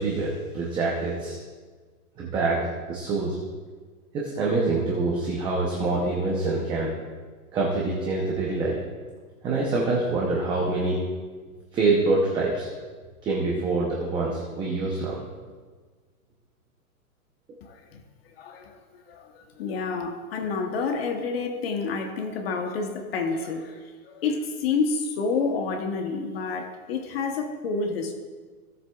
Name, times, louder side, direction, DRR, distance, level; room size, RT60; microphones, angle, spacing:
voice 1, 0.0-1.4 2.2-3.4 4.1-6.9 7.5-8.8 9.4-11.0 11.7-12.7 13.2-15.2, right 3 dB, 10° right, -3 dB, 0.7 m, -25 dB
voice 2, 17.6-18.0 18.4-18.8 19.1-28.1, left 4 dB, 40° left, 4 dB, 1.0 m, -29 dB
17.0 x 7.7 x 2.3 m, 1.5 s
hypercardioid pair, 155°, 45 cm